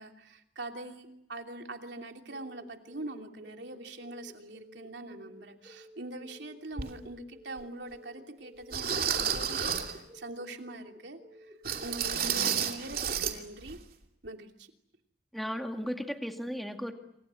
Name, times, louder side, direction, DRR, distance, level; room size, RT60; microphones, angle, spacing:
voice 1, 0.0-11.5 11.8-13.8 14.2-14.7, right 2 dB, 75° right, 4 dB, 3.0 m, -43 dB
sound 1, 2.3-12.1, equal, 15° right, 7.7 m, -53 dB
sound 2, 6.8-6.9 7.6-7.7 8.7-10.0 11.6-13.4 13.6-13.8 14.2-14.3, right 7 dB, 55° right, 2.8 m, -31 dB
voice 2, 12.2-12.6 15.3-16.9, equal, ahead, 4 dB, 2.2 m, -36 dB
28.0 x 27.0 x 7.7 m, 0.82 s
head